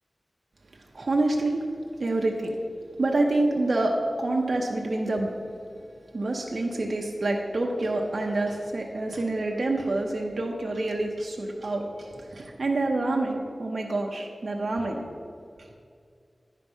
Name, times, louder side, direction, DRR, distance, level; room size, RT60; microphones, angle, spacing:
voice 1, 0.9-1.7 2.0-2.6 3.0-5.3 6.1-15.0 15.6-15.7, right 2 dB, 65° right, 0 dB, 0.7 m, -27 dB
10.0 x 4.6 x 5.4 m, 2.3 s
wide cardioid pair, 55°, 0 cm